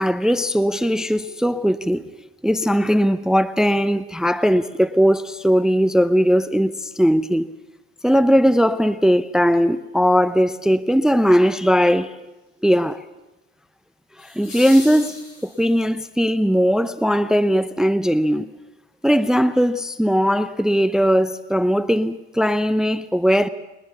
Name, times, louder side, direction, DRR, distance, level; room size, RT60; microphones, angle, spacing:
voice 1, 0.0-2.1 2.4-7.5 8.0-12.1 12.6-13.1 14.2-18.5 19.0-23.5, equal, ahead, 0.7 m, -19 dB
sound 1, 8.6-8.7 14.2-16.0 18.2-18.3, left 2 dB, 80° left, 7.5 m, -38 dB
21.5 x 20.5 x 7.1 m
hypercardioid pair, 60°, 32 cm